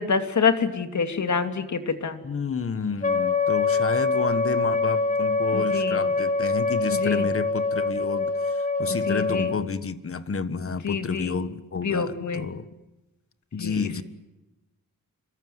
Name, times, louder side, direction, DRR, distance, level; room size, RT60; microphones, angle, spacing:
voice 1, 0.0-2.2 5.5-6.0 6.9-7.3 8.9-9.5 10.8-11.4 11.8-12.5 13.6-14.0, left 5 dB, 55° left, 8 dB, 2.8 m, -27 dB
voice 2, 2.2-12.7 13.5-14.0, left 5 dB, 40° left, 13 dB, 1.5 m, -30 dB
Wind instrument woodwind instrument, 3.0-9.6, left 3 dB, 25° left, 2.4 m, -24 dB
27.0 x 23.0 x 9.6 m, 0.99 s
wide cardioid pair, 155°, 34 cm